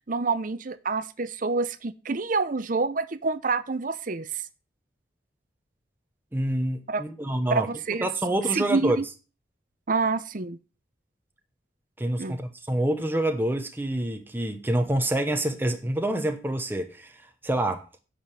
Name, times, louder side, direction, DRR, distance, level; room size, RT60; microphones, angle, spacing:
voice 1, 0.1-4.4 6.9-7.0 7.5-8.1 8.5-9.0 9.9-10.6 12.2-12.4, right 4 dB, 50° right, 0.8 m, -27 dB
voice 2, 6.3-7.7 8.0-9.0 12.0-17.2 17.4-17.9, right 1 dB, 10° right, 1.0 m, -27 dB
10.5 x 5.1 x 7.5 m
head